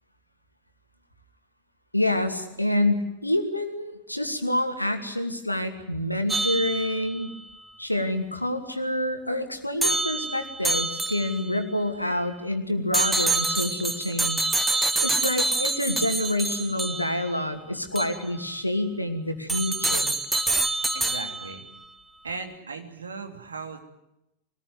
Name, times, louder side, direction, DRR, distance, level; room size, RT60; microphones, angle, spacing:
voice 1, 1.9-7.3 7.8-14.5 15.0-20.1, left 1 dB, 85° left, 6 dB, 2.5 m, -27 dB
sound 1, 6.3-7.2 9.8-11.6 12.9-17.3 18.0-18.2 19.5-21.6, right 2 dB, 5° right, 1.6 m, -26 dB
voice 2, 20.9-21.7 22.2-23.8, right 4 dB, 75° right, 5 dB, 3.2 m, -37 dB
24.0 x 19.5 x 9.6 m, 0.87 s
figure-of-eight pair, 90°, 0 cm